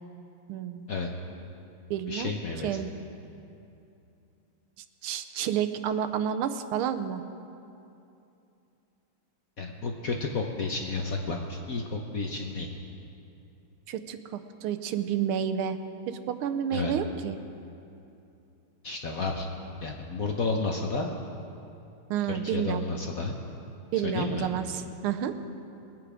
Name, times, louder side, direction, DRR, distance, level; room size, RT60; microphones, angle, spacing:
voice 1, 0.5-0.9 1.9-2.3 2.6-2.9 5.0-7.2 13.9-15.8 16.1-17.4 22.1-22.8 23.9-25.3, right 9 dB, 80° right, 9 dB, 1.5 m, -30 dB
voice 2, 2.1-2.8 9.6-12.7 16.7-16.9 18.8-19.5 19.8-21.1 22.3-23.3 24.0-24.5, left 3 dB, 55° left, 1 dB, 1.0 m, -31 dB
21.0 x 9.1 x 5.0 m, 2.7 s
omnidirectional pair, 2.4 m